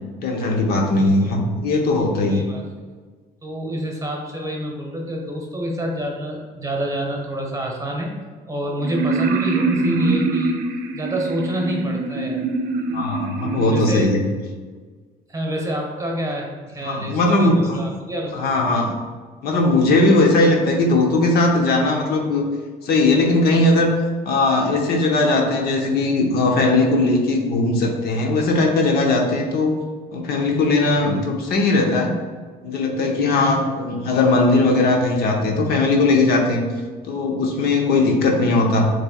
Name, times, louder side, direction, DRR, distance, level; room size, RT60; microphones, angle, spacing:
voice 1, 0.2-2.4 12.9-14.2 16.8-17.8 18.3-18.9 19.4-22.4 22.8-23.9 24.2-29.8 30.1-32.1 32.6-36.7 37.0-38.9, left 2 dB, 70° left, 1 dB, 0.8 m, -19 dB
voice 2, 0.9-1.4 2.3-2.6 3.4-8.1 8.5-10.6 10.9-12.4 13.7-14.1 15.3-18.5 33.2-33.6, equal, 20° right, 0 dB, 0.9 m, -28 dB
sound 1, 8.8-13.9, right 3 dB, 70° right, 0.6 m, -24 dB
6.7 x 3.2 x 2.3 m, 1.5 s
cardioid pair, 110°, 17 cm